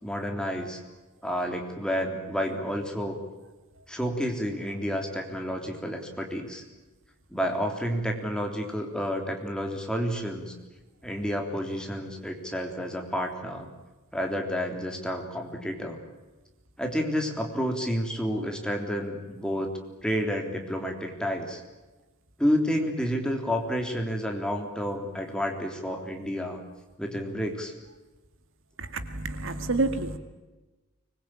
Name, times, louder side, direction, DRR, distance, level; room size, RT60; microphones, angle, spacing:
voice 1, 0.0-0.8 1.2-3.2 3.9-6.6 7.3-10.5 11.0-13.7 14.1-16.0 16.8-19.7 20.0-21.6 22.4-26.6 27.0-27.7, equal, 5° left, 2 dB, 3.4 m, -30 dB
voice 2, 28.8-30.2, right 2 dB, 60° right, 8 dB, 2.1 m, -29 dB
24.5 x 21.5 x 8.9 m, 1.2 s
head